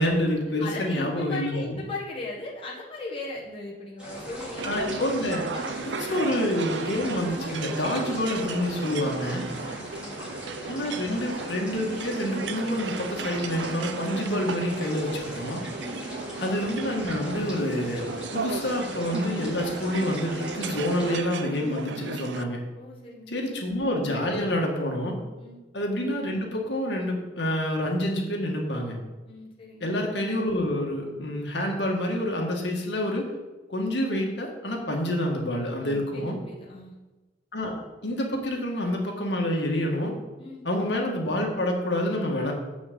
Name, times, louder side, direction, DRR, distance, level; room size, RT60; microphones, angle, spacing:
voice 1, 0.0-1.8 4.6-5.4 5.8-9.5 10.6-15.6 16.4-22.6 23.3-25.2 25.7-29.0 29.8-33.3 33.7-36.4 37.5-40.1 40.6-42.5, left 1 dB, 70° left, 0 dB, 1.9 m, -28 dB
voice 2, 0.6-4.8 5.5-6.3 9.6-10.3 15.8-16.5 22.8-23.5 25.4-25.6 29.2-30.0 35.8-36.9 40.4-40.6, left 2 dB, 30° left, -4 dB, 1.4 m, -39 dB
sound 1, 4.0-21.2, equal, 5° right, 3.1 m, -40 dB
sound 2, 4.6-22.4, right 4 dB, 70° right, 0.5 m, -35 dB
6.5 x 6.2 x 7.6 m, 1.2 s
head